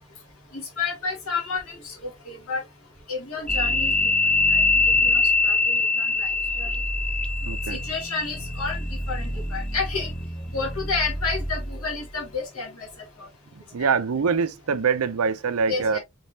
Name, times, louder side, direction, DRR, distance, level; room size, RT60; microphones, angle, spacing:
voice 1, 0.5-2.6 3.1-3.9 4.5-6.3 6.6-6.7 7.7-8.8 9.1-10.1 10.5-12.9 13.2-13.3 13.8-13.9 15.7-16.0, left 4 dB, 70° left, 2.1 m, -31 dB
sound 1, 3.5-12.1, left 2 dB, 5° left, 0.6 m, -24 dB
voice 2, 7.4-7.8 13.7-16.0, right 5 dB, 75° right, 0.6 m, -24 dB
5.3 x 3.4 x 2.7 m
head